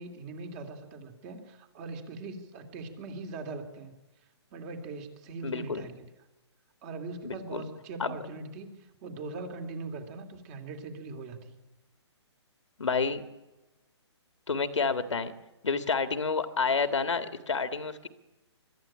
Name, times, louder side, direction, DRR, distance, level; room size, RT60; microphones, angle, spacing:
voice 1, 0.0-3.9 4.5-6.0 6.8-11.6, right 3 dB, 30° right, 5 dB, 2.8 m, -41 dB
voice 2, 5.4-5.9 7.2-7.6 8.0-8.2 12.8-13.2 14.5-15.3 15.6-18.1, left 5 dB, 85° left, 9 dB, 1.8 m, -29 dB
23.0 x 13.0 x 8.9 m, 1.1 s
hypercardioid pair, 145°, 15 cm